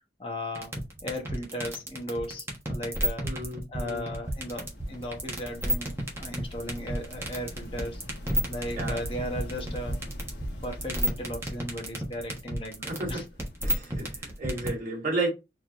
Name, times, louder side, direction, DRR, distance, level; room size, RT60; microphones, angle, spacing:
voice 1, 0.2-0.7 1.0-3.3 3.7-8.0 8.5-10.0 10.6-13.2, equal, 30° left, 1.1 m, -36 dB
sound 1, 0.5-14.7, right 1 dB, 15° right, 1.2 m, -31 dB
voice 2, 3.2-4.2 8.7-9.0 12.9-13.3 13.6-15.3, right 2 dB, 50° right, 2.2 m, -33 dB
sound 2, 4.2-14.4, equal, 70° left, 1.1 m, -43 dB
4.3 x 3.0 x 3.0 m
head